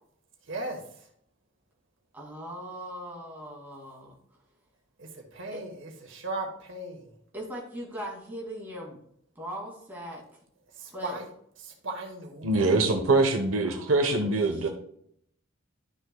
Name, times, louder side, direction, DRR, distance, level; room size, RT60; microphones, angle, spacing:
voice 1, 0.5-0.8 5.0-7.1 10.8-11.3 11.6-12.5, right 2 dB, 70° right, 1 dB, 1.9 m, -37 dB
voice 2, 2.1-4.2 5.5-5.6 7.3-9.0 9.4-10.4 10.9-11.2 13.6-14.7, equal, 10° right, -3 dB, 2.4 m, -40 dB
voice 3, 12.4-14.7, right 2 dB, 85° right, 4 dB, 1.1 m, -23 dB
12.0 x 6.7 x 2.3 m, 0.69 s
head